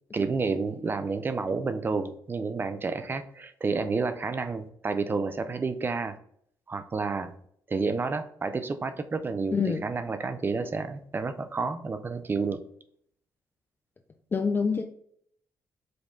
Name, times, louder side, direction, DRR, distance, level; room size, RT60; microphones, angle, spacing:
voice 1, 0.1-6.2 6.7-7.3 7.7-12.6, right 4 dB, 30° right, 10 dB, 0.5 m, -30 dB
voice 2, 9.5-9.8 14.3-14.8, left 5 dB, 30° left, 5 dB, 0.4 m, -25 dB
5.1 x 2.2 x 3.7 m, 0.66 s
cardioid pair, 90°, 8 cm